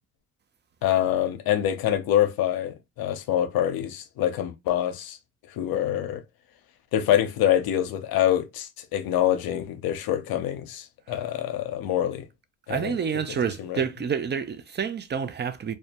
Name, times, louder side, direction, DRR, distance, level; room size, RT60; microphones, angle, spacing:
voice 1, 0.8-5.2 5.5-6.2 6.9-12.2 12.7-13.0 13.6-13.8, left 11 dB, 75° left, 0.6 m, -25 dB
voice 2, 12.7-15.7, right 7 dB, 30° right, 0.4 m, -28 dB
2.2 x 2.1 x 2.7 m
supercardioid pair, 60°, 36 cm